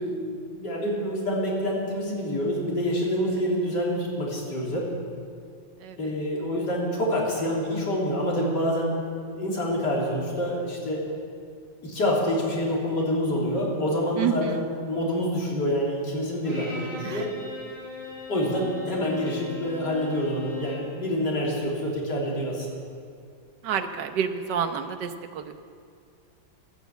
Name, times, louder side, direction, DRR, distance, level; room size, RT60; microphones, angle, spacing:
voice 1, 0.0-4.9 6.0-8.9 9.3-11.0 11.8-17.3 18.3-22.8, equal, 60° left, -4 dB, 3.9 m, -27 dB
voice 2, 5.8-6.1 14.2-14.6 17.0-17.2 23.6-25.5, right 7 dB, 65° right, 7 dB, 1.5 m, -29 dB
Bowed string instrument, 16.4-20.9, left 4 dB, 25° right, 4.5 m, -38 dB
13.5 x 12.5 x 8.3 m, 2.3 s
omnidirectional pair, 2.1 m